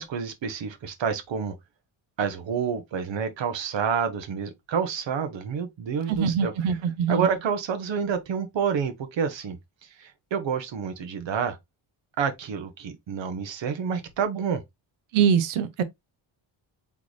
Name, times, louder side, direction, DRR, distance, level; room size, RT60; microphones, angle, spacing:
voice 1, 0.0-1.5 2.2-6.5 7.1-11.6 12.2-14.6, right 6 dB, 65° right, 1.2 m, -28 dB
voice 2, 6.1-7.4 15.1-15.8, right 7 dB, 90° right, 0.8 m, -23 dB
3.8 x 3.5 x 3.2 m
cardioid pair, 75°, 48 cm